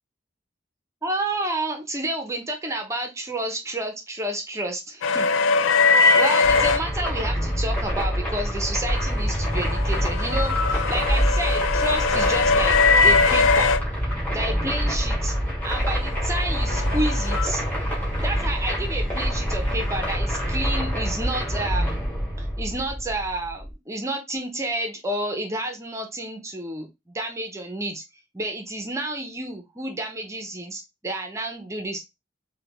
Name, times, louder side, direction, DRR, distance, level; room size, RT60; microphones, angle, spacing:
voice 1, 1.0-5.3 6.0-13.8 14.3-15.3 15.6-17.6 18.2-22.0 22.4-28.0 28.3-32.0, right 1 dB, 15° right, 4 dB, 0.5 m, -30 dB
sound 1, 5.0-6.8 9.2-13.8 16.2-17.5, left 4 dB, 85° left, 0.3 m, -21 dB
sound 2, 6.4-23.7, equal, 10° left, 1.1 m, -26 dB
sound 3, 15.5-20.0, equal, 35° left, 1.1 m, -46 dB
3.2 x 2.1 x 2.8 m, 0.23 s
head